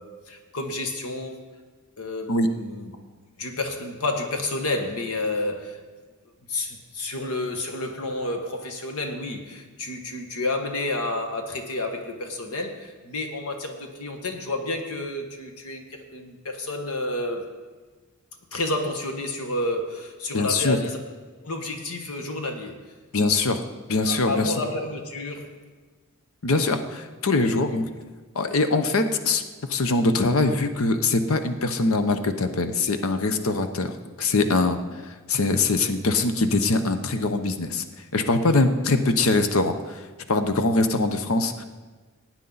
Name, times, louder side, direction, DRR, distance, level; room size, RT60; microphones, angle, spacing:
voice 1, 0.0-1.4 2.0-3.0 3.4-5.8 6.5-17.4 18.5-21.0 21.4-22.8 24.0-25.5 27.4-28.0, left 2 dB, 80° left, 4 dB, 1.5 m, -30 dB
voice 2, 20.3-20.8 23.1-23.6 23.9-24.5 26.4-27.9 28.3-29.4 29.7-34.8 35.3-37.8 38.1-40.0 40.3-41.6, left 3 dB, 65° left, 9 dB, 0.8 m, -22 dB
18.0 x 9.0 x 4.0 m, 1.3 s
head